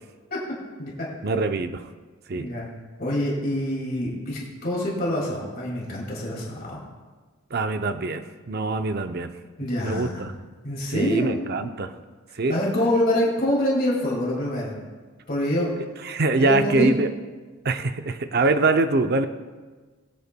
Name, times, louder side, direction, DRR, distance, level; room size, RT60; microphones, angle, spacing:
voice 1, 1.2-1.9 2.3-2.5 7.5-9.3 9.8-10.3 10.9-11.9 12.4-12.6 16.0-17.1 17.6-19.3, right 3 dB, 45° right, 8 dB, 0.5 m, -24 dB
voice 2, 2.4-2.7 3.0-6.8 9.6-10.2 10.6-11.4 12.5-14.7 15.3-15.7 16.4-16.9, left 1 dB, 45° left, -4 dB, 2.3 m, -25 dB
20.0 x 8.4 x 2.2 m, 1.3 s
head